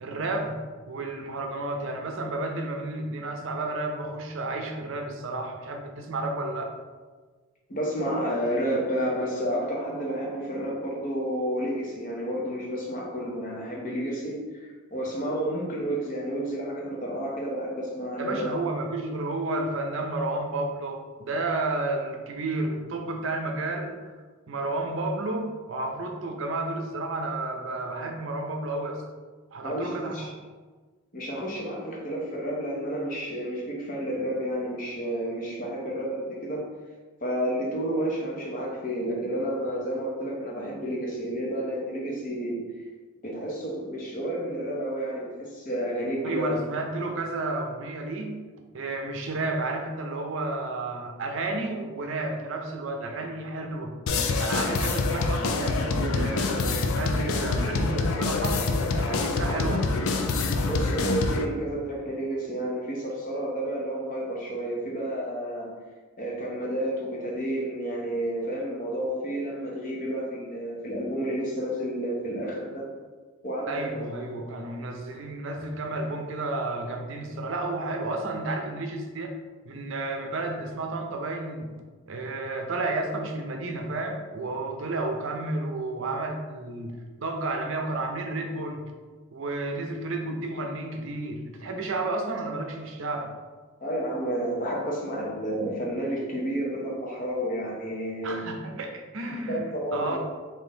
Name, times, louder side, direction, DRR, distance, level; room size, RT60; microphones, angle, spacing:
voice 1, 0.0-0.6 0.9-6.8 18.2-24.1 24.5-29.0 29.5-30.3 46.2-48.4 48.7-53.9 54.4-59.9 73.7-79.3 79.7-81.7 82.1-88.9 89.3-93.3 98.2-99.6 99.9-100.2, right 2 dB, 60° right, 3 dB, 0.5 m, -31 dB
voice 2, 7.7-18.5 29.6-30.3 31.1-36.7 37.2-42.6 43.2-46.6 60.6-65.7 66.2-72.8 73.4-74.1 74.4-74.6 93.8-98.4 99.3-100.2, right 1 dB, 40° left, -2 dB, 0.8 m, -30 dB
sound 1, 54.1-61.5, left 3 dB, 75° left, 0.4 m, -26 dB
3.7 x 2.6 x 3.8 m, 1.4 s
head